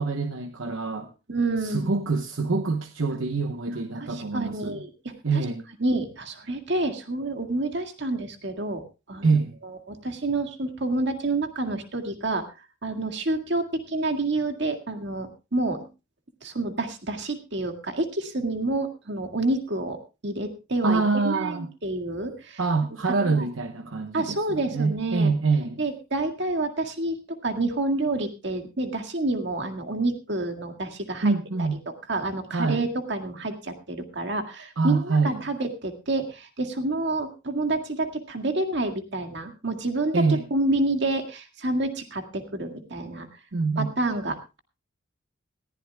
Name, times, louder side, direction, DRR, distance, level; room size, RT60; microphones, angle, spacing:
voice 1, 0.0-1.1 1.6-4.8 5.2-5.6 9.2-9.5 20.8-21.7 22.6-25.8 31.2-31.8 32.5-32.9 34.8-35.4 40.1-40.4 43.5-43.9, right 4 dB, 75° right, 1.0 m, -25 dB
voice 2, 1.3-1.9 4.0-5.1 5.8-8.8 9.1-9.3 9.6-12.4 12.8-15.9 16.4-20.0 20.2-22.6 23.0-23.5 24.1-25.3 25.8-31.3 31.6-31.7 32.1-43.3 43.8-44.6, right 2 dB, 60° right, 2.0 m, -28 dB
20.0 x 15.0 x 2.3 m
head